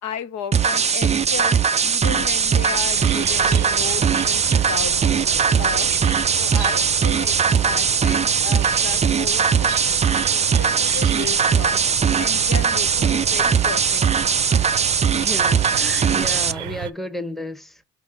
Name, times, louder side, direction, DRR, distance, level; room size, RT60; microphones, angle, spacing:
voice 1, 0.0-1.6 1.8-4.9 5.6-5.9 6.4-11.8 12.2-14.3, left 8 dB, 65° left, 0.7 m, -34 dB
sound 1, 0.5-16.5, right 6 dB, 25° right, 0.4 m, -19 dB
sound 2, 2.1-16.5, left 2 dB, 90° left, 1.1 m, -41 dB
sound 3, 3.0-16.9, right 12 dB, 70° right, 0.6 m, -34 dB
voice 2, 15.1-17.8, left 1 dB, ahead, 0.9 m, -32 dB
6.0 x 4.9 x 3.8 m
cardioid pair, 90°, 30 cm